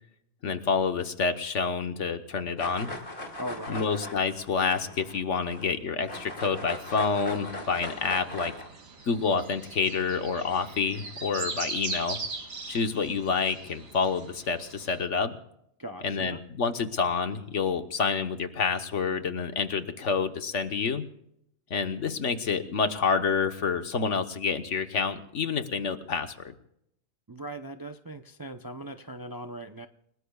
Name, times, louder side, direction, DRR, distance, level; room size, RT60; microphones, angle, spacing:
voice 1, 0.4-2.9 3.7-8.5 9.1-12.2 12.7-15.4 16.0-21.0 21.7-26.5, left 5 dB, 65° left, 8 dB, 1.4 m, -28 dB
sound 1, 2.6-5.7 6.1-8.7, left 1 dB, 40° left, 2.7 m, -39 dB
voice 2, 3.4-3.8 15.8-16.4 27.3-29.9, right 1 dB, 25° right, 7 dB, 0.5 m, -39 dB
sound 2, 6.7-15.0, right 3 dB, 85° right, 2.1 m, -40 dB
29.5 x 18.5 x 2.4 m, 0.75 s
omnidirectional pair, 1.4 m